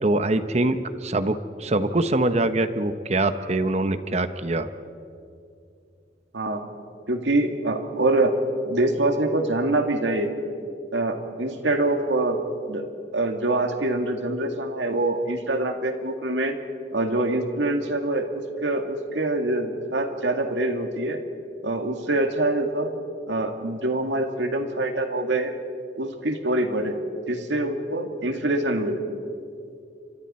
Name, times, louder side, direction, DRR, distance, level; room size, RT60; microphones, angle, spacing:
voice 1, 0.0-4.7, right 2 dB, 35° right, 11 dB, 0.9 m, -24 dB
voice 2, 6.3-6.6 7.1-8.3 8.7-10.3 10.9-12.4 12.7-12.8 13.1-16.6 16.9-21.2 21.6-22.9 23.3-25.5 26.0-27.0 27.3-29.0, right 2 dB, 80° right, 5 dB, 2.1 m, -25 dB
29.5 x 25.0 x 4.3 m, 2.5 s
head